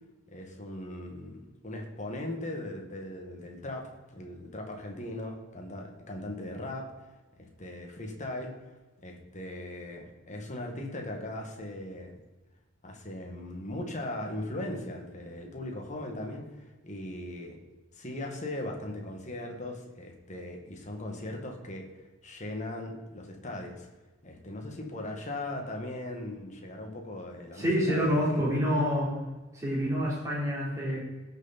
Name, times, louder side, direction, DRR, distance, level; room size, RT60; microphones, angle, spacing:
voice 1, 0.3-6.9 7.4-8.5 9.0-12.2 12.8-17.6 17.9-21.9 22.2-23.9 24.2-28.5, left 1 dB, 40° left, 1 dB, 2.0 m, -39 dB
voice 2, 27.6-29.2 29.5-31.0, equal, 15° right, -6 dB, 4.2 m, -27 dB
17.5 x 6.5 x 4.4 m, 1.2 s
head